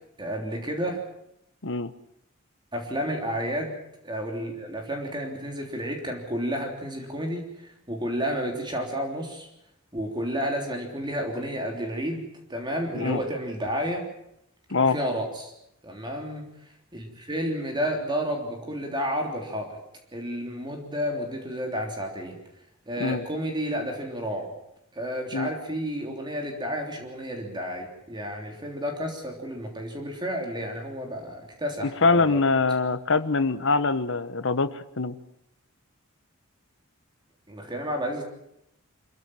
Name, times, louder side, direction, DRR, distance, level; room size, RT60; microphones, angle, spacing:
voice 1, 0.2-1.0 2.7-3.7 4.0-9.5 9.9-14.1 14.8-15.5 15.8-19.8 20.1-22.4 22.9-24.5 24.9-32.4 37.5-38.2, equal, 20° right, 2 dB, 3.4 m, -31 dB
voice 2, 32.0-35.1, left 3 dB, 65° left, 13 dB, 1.2 m, -23 dB
25.5 x 15.0 x 8.9 m, 0.79 s
head